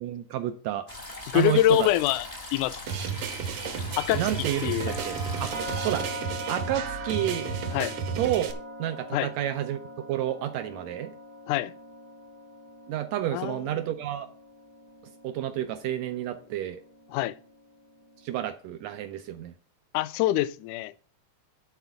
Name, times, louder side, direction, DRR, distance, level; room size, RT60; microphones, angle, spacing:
voice 1, 0.0-0.8 1.3-1.9 4.2-5.5 5.8-6.1 6.5-7.5 8.2-8.5 8.8-9.8 10.1-11.1 12.9-14.3 15.2-16.8 18.2-19.5, right 12 dB, 85° right, 1.5 m, -30 dB
sound 1, 0.9-6.0, left 2 dB, 45° left, 0.5 m, -41 dB
voice 2, 1.3-2.3 2.5-2.8 4.0-4.2 4.6-4.9 7.7-7.9 9.1-9.3 11.5-11.7 13.3-13.6 17.1-17.4 19.9-20.9, left 15 dB, 80° left, 1.9 m, -24 dB
sound 2, 2.9-8.5, right 7 dB, 65° right, 1.6 m, -33 dB
sound 3, 4.5-18.4, equal, 50° right, 0.9 m, -42 dB
10.5 x 4.4 x 6.9 m
omnidirectional pair, 3.7 m